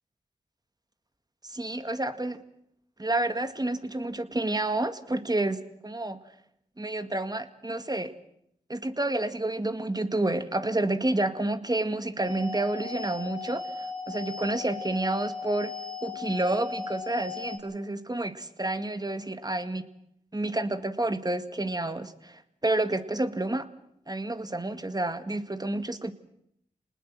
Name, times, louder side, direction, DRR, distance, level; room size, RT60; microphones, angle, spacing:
voice 1, 1.4-2.4 3.0-6.2 6.8-8.1 8.7-15.7 16.0-19.8 20.3-23.7 24.1-26.1, right 2 dB, 25° right, 10 dB, 2.1 m, -29 dB
sound 1, 12.2-17.6, left 5 dB, 55° right, 6.5 m, -37 dB
26.5 x 19.5 x 7.7 m, 0.74 s
cardioid pair, 40°, 15 cm